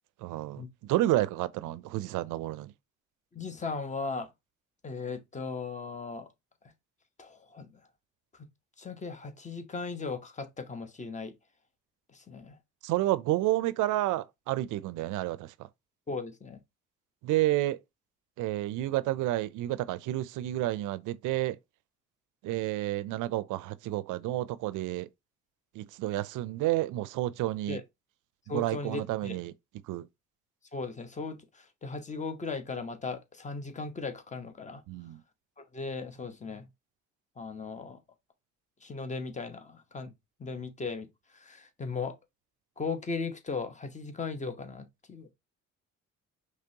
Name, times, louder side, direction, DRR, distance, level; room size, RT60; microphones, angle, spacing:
voice 1, 0.2-2.7 12.8-15.5 17.2-17.8 18.4-21.6 22.4-25.1 25.7-27.8 28.5-29.5 29.9-30.1 34.9-35.2, right 16 dB, 85° right, 0.5 m, -30 dB
voice 2, 3.3-4.3 4.8-6.3 7.2-7.7 8.4-8.5 8.8-11.3 12.1-12.6 16.1-16.6 27.7-27.8 28.5-29.4 30.7-34.8 35.6-36.6 37.4-38.0 38.8-40.1 40.4-41.1 41.3-42.1 42.8-45.3, left 4 dB, 25° left, 0.9 m, -37 dB
5.2 x 3.2 x 2.7 m
cardioid pair, 90°, 30 cm